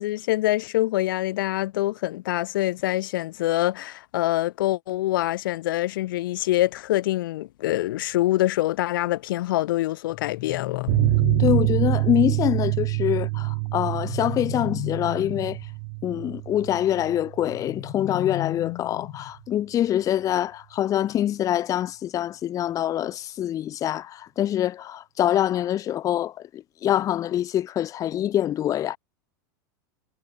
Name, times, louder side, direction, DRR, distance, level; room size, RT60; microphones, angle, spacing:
voice 1, 0.0-10.9, left 16 dB, 75° left, 0.7 m, -25 dB
sound 1, 10.1-11.9 13.8-15.6 17.5-19.4, left 30 dB, 55° left, 4.1 m, -34 dB
sound 2, 10.9-18.0 18.2-18.3 18.7-18.8, right 30 dB, 60° right, 0.8 m, -26 dB
voice 2, 11.4-15.6 16.0-29.0, left 11 dB, 30° left, 0.6 m, -25 dB
hypercardioid pair, 115°, 11 cm